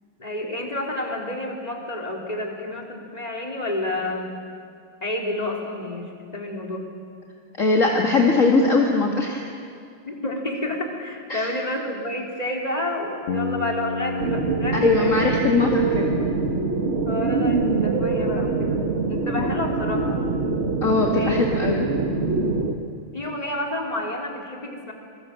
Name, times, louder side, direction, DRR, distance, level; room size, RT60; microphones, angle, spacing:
voice 1, 0.2-4.4 5.0-6.9 10.1-15.3 17.1-20.3 21.1-21.4 23.1-24.9, left 1 dB, 15° left, 0 dB, 3.6 m, -30 dB
voice 2, 7.6-9.4 11.3-11.5 14.7-16.1 19.4-19.5 20.8-21.8, left 3 dB, 35° left, 0 dB, 2.3 m, -20 dB
Bass guitar, 13.3-17.3, left 3 dB, 85° left, 2.8 m, -32 dB
sound 1, 14.2-22.7, right 3 dB, 35° right, 1.6 m, -24 dB
27.5 x 22.5 x 7.8 m, 2.4 s
omnidirectional pair, 2.4 m